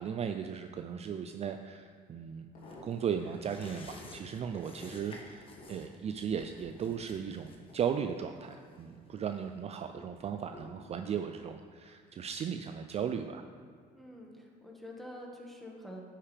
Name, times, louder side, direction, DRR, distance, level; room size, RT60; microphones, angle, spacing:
voice 1, 0.0-2.5 2.8-13.4, right 7 dB, 40° right, 7 dB, 0.4 m, -36 dB
sound 1, 2.3-3.3 3.8-4.5 5.0-8.4 8.8-9.3 9.9-11.3 12.1-12.4 12.7-12.8, left 1 dB, 50° left, 2.3 m, -56 dB
Slurping Noodles, 2.6-9.7 10.0-10.1, left 2 dB, 30° left, 1.2 m, -53 dB
voice 2, 13.9-16.0, left 1 dB, ahead, -1 dB, 1.6 m, -47 dB
9.6 x 8.6 x 3.4 m, 2.1 s
cardioid pair, 110°, 17 cm